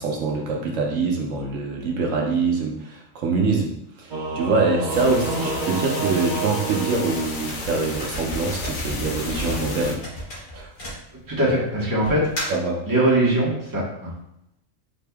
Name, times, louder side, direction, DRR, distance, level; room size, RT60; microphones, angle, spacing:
voice 1, 0.0-3.7 4.0-10.0 10.5-10.7 12.5-12.8, right 3 dB, 75° right, 0 dB, 1.1 m, -24 dB
Singing / Musical instrument, 4.1-8.2, right 3 dB, 45° right, 0.7 m, -30 dB
sound 1, 4.9-9.9, left 3 dB, 50° left, 0.6 m, -34 dB
sound 2, 7.2-11.5 12.0-12.7, equal, 85° left, 2.1 m, -33 dB
voice 2, 11.3-12.3 12.9-14.1, right 1 dB, 15° right, -5 dB, 1.1 m, -21 dB
5.1 x 4.2 x 2.2 m, 0.77 s
omnidirectional pair, 1.4 m